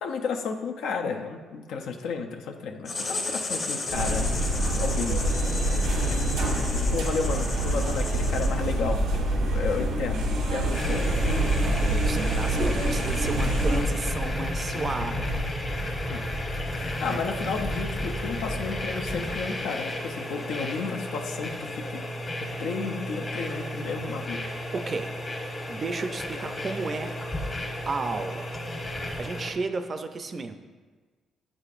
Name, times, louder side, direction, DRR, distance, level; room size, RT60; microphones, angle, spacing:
voice 1, 0.0-5.2 5.8-6.2 6.9-9.0 9.3-11.1 16.1-16.3 16.7-22.0 22.4-24.4, left 5 dB, 85° left, 3 dB, 0.5 m, -32 dB
Writing, 2.9-8.8, left 3 dB, 60° left, 1.5 m, -34 dB
sound 1, 3.9-13.8, right 1 dB, 90° right, 0.9 m, -26 dB
sound 2, 10.7-29.5, left 1 dB, 30° left, 0.9 m, -32 dB
voice 2, 11.6-15.4 17.0-17.2 24.7-25.1 25.7-27.1 27.9-28.5 29.2-30.6, right 3 dB, 40° right, 8 dB, 0.4 m, -33 dB
8.2 x 5.0 x 2.5 m, 1.4 s
cardioid pair, 95°, 0 cm